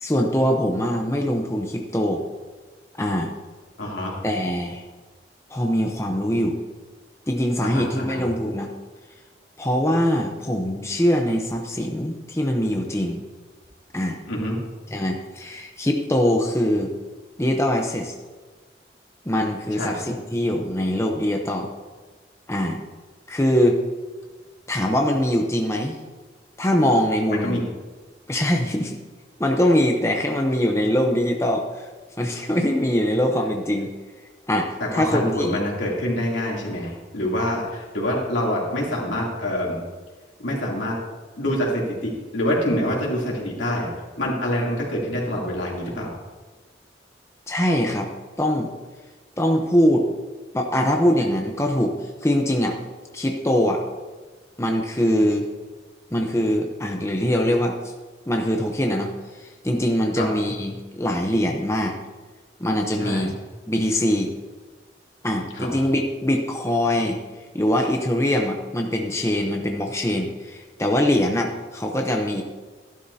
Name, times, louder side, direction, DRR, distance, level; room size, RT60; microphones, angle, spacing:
voice 1, 0.0-2.2 3.0-3.3 4.2-4.8 5.5-6.6 7.3-8.7 9.6-13.2 13.9-14.2 14.9-16.9 17.4-18.1 19.2-21.7 22.5-22.8 23.3-23.8 24.7-26.0 26.6-27.6 28.3-29.0 29.4-31.9 32.2-33.9 34.5-35.6 47.5-48.1 48.4-48.7 49.4-50.1 50.5-52.8 53.1-53.8 54.6-55.5 56.1-57.8 58.3-62.0 62.6-64.3 65.2-67.2 67.5-72.4, equal, 15° left, 2 dB, 0.7 m, -22 dB
voice 2, 3.8-4.2 7.6-8.2 14.3-14.6 19.8-19.9 27.3-27.6 34.8-39.8 40.4-41.0 41.4-43.9 44.2-46.1 60.2-60.3 63.0-63.3 65.6-65.7, left 1 dB, 90° left, -3 dB, 2.9 m, -26 dB
13.0 x 11.5 x 2.8 m, 1.3 s
head